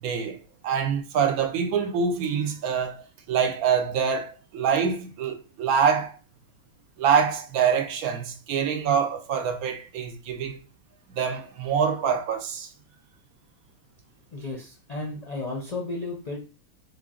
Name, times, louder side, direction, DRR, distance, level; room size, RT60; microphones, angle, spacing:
voice 1, 0.0-6.2 7.0-10.6 11.1-12.7, right 7 dB, 80° right, 1.0 m, -25 dB
voice 2, 14.3-16.4, left 2 dB, 50° left, 0.5 m, -33 dB
3.7 x 2.3 x 3.7 m
omnidirectional pair, 1.5 m